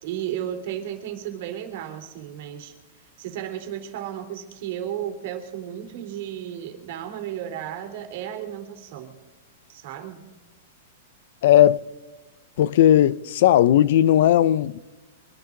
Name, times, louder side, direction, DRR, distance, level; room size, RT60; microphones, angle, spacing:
voice 1, 0.0-2.7 3.2-9.1 9.7-10.2, right 10 dB, 50° right, 3.5 m, -34 dB
voice 2, 11.4-11.8 12.6-14.8, left 12 dB, 60° left, 0.5 m, -17 dB
24.5 x 11.5 x 3.9 m
supercardioid pair, 155°, 0 cm